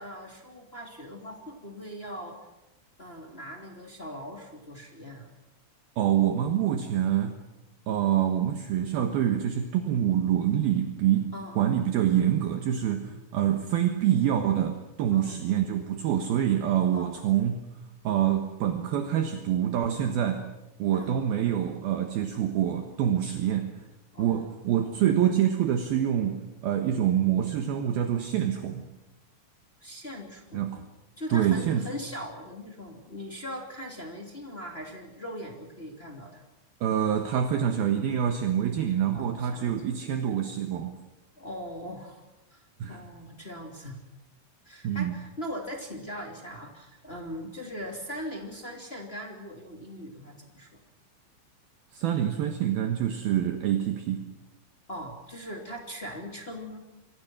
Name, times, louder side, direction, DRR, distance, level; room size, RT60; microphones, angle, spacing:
voice 1, 0.0-2.4 3.0-5.3 11.3-11.6 15.1-15.4 16.9-17.2 20.9-21.2 24.1-24.4 29.8-30.7 31.2-36.4 39.1-40.0 41.4-42.2 42.5-42.6 42.9-44.0 44.6-50.8 54.9-56.8, equal, 20° left, 1 dB, 1.9 m, -40 dB
voice 2, 6.0-7.4 7.9-17.7 18.0-20.5 20.8-23.7 24.2-28.8 30.5-30.8 31.3-31.8 36.8-41.0 42.8-43.0 44.8-45.2 51.9-54.3, right 10 dB, 65° right, 5 dB, 2.6 m, -26 dB
28.5 x 23.5 x 6.2 m, 0.99 s
omnidirectional pair, 5.9 m